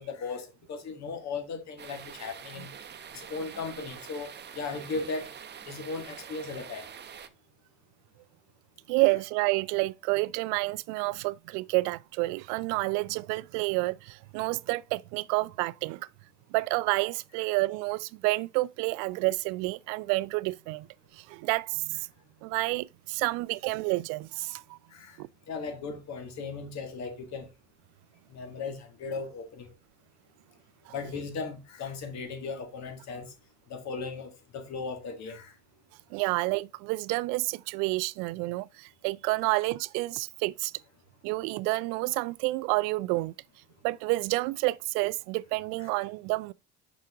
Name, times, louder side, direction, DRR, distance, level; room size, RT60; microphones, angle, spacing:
voice 1, 0.0-2.7 3.1-5.3 5.7-6.9 24.9-25.2 25.5-27.5 28.3-29.7 30.9-33.3 33.7-35.5 45.8-45.9, left 4 dB, 50° left, 1.8 m, -37 dB
sound 1, 1.8-7.3, right 7 dB, 30° right, 0.8 m, -45 dB
voice 2, 8.9-16.1 16.5-20.9 21.1-22.1 22.4-24.8 25.2-25.3 30.9-31.0 36.1-40.7 41.2-43.3 43.8-46.5, right 23 dB, 60° right, 0.4 m, -29 dB
5.6 x 5.0 x 3.6 m
hypercardioid pair, 65°, 35 cm